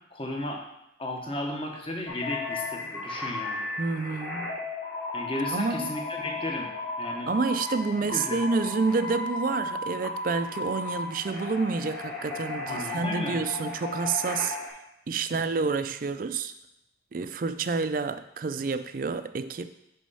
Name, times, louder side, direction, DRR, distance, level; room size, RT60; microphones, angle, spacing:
voice 1, 0.1-0.6 1.0-3.6 5.1-6.7 7.0-7.3 8.0-8.4 12.7-13.4 15.3-15.4, left 1 dB, 30° left, 1 dB, 1.1 m, -34 dB
sound 1, 2.1-14.7, left 2 dB, 55° left, 2.7 m, -35 dB
voice 2, 3.8-4.6 5.5-5.9 7.3-14.6 15.1-16.5 17.1-19.7, right 4 dB, 50° right, 11 dB, 0.4 m, -29 dB
6.2 x 5.4 x 5.5 m, 0.84 s
head